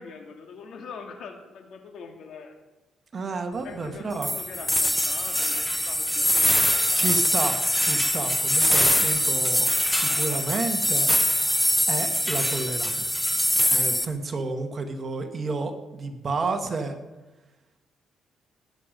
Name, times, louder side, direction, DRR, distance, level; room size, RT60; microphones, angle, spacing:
voice 1, 0.0-2.6 3.6-7.2, left 5 dB, 70° left, 4 dB, 2.4 m, -43 dB
voice 2, 3.1-4.3 6.9-11.1 11.9-13.2 13.7-17.0, right 3 dB, 40° right, 5 dB, 1.9 m, -31 dB
sound 1, 4.2-14.0, equal, 5° left, 1.1 m, -23 dB
19.0 x 9.2 x 5.4 m, 1.1 s
cardioid pair, 90°, 0 cm